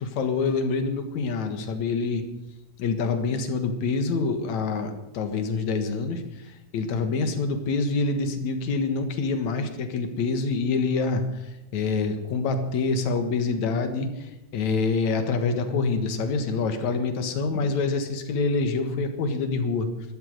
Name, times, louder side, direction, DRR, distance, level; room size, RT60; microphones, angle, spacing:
voice 1, 0.0-2.2 2.8-6.2 6.7-19.9, left 4 dB, 75° left, 6 dB, 2.8 m, -26 dB
13.0 x 12.0 x 6.7 m, 0.98 s
omnidirectional pair, 3.3 m